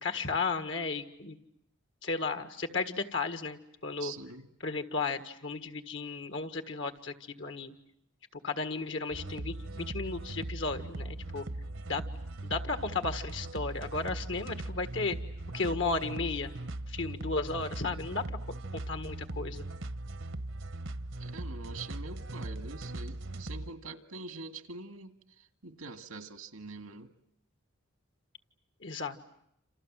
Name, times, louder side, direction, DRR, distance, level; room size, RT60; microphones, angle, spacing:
voice 1, 0.0-1.4 2.0-4.1 4.6-7.8 8.3-11.5 11.9-12.0 12.4-15.2 15.5-16.5 16.9-19.6 28.8-29.2, left 3 dB, 60° left, 8 dB, 1.8 m, -34 dB
voice 2, 4.0-4.5 21.2-25.1 25.6-27.1, right 3 dB, 90° right, 9 dB, 2.1 m, -44 dB
sound 1, 9.1-23.7, right 2 dB, 65° right, 1.1 m, -39 dB
28.0 x 28.0 x 7.6 m, 0.76 s
head